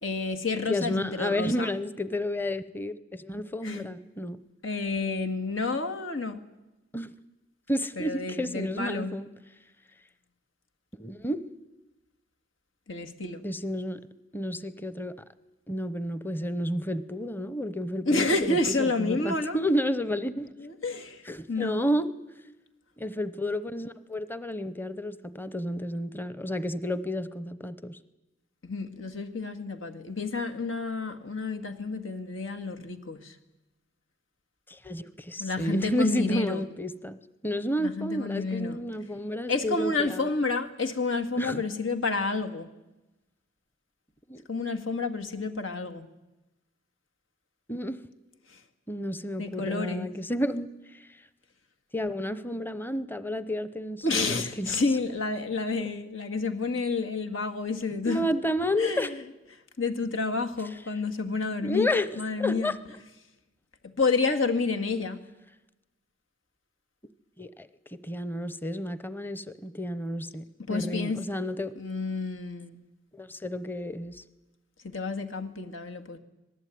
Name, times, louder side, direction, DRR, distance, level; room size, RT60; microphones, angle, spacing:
voice 1, 0.0-1.7 3.6-3.9 4.6-6.4 8.0-9.1 12.9-13.4 18.1-19.6 20.6-21.8 28.6-33.4 35.4-36.6 37.8-38.8 39.5-42.7 44.5-46.1 48.5-48.6 49.4-50.1 54.0-58.3 58.8-59.2 59.8-61.9 62.2-62.7 63.8-65.2 70.6-71.2 71.8-72.8 74.8-76.2, left 3 dB, 85° left, 5 dB, 2.0 m, -30 dB
voice 2, 0.7-4.4 6.9-7.1 7.7-9.3 11.0-11.5 13.4-14.0 14.3-15.1 15.7-20.5 21.3-22.1 23.0-28.0 34.7-37.2 37.4-40.3 41.4-41.6 44.3-44.4 47.7-48.0 48.9-50.7 51.9-54.7 58.1-59.1 61.6-62.1 62.4-62.8 67.4-71.7 73.1-74.2, left 1 dB, 10° left, 14 dB, 0.8 m, -31 dB
26.0 x 18.5 x 9.4 m, 1.0 s
head